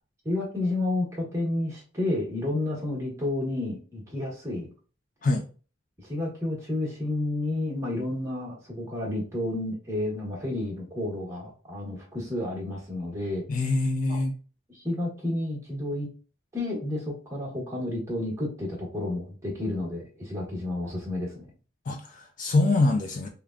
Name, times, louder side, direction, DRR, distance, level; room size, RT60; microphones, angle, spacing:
voice 1, 0.2-4.7 6.0-13.4 14.1-14.2 14.7-16.1 16.5-21.5, left 2 dB, 15° right, -4 dB, 1.0 m, -31 dB
voice 2, 13.5-14.3 21.9-23.3, left 2 dB, 40° left, 5 dB, 0.3 m, -24 dB
3.4 x 2.1 x 2.4 m, 0.36 s
head